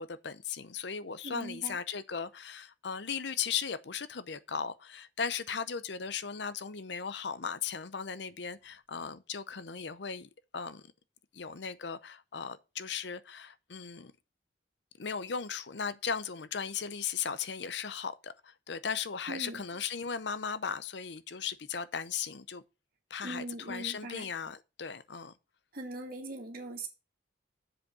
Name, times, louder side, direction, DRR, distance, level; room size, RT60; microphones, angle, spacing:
voice 1, 0.0-10.8 11.3-14.1 15.0-22.6 23.1-25.3, left 6 dB, 65° left, 0.7 m, -37 dB
voice 2, 1.2-1.8 19.3-19.6 23.2-24.3 25.7-26.9, right 2 dB, 50° right, 2.3 m, -40 dB
7.3 x 5.4 x 6.8 m
head